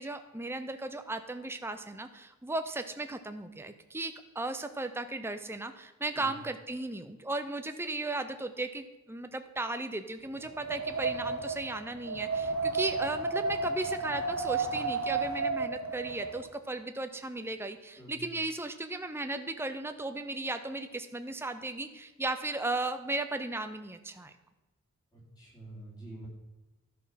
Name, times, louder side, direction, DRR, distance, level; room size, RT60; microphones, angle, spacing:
voice 1, 0.0-24.3, right 2 dB, 10° right, 8 dB, 0.6 m, -36 dB
Wind, 10.4-16.4, right 4 dB, 65° right, 1.1 m, -32 dB
voice 2, 25.1-26.3, right 2 dB, 15° left, -4 dB, 3.1 m, -47 dB
11.5 x 6.4 x 5.7 m, 1.1 s
head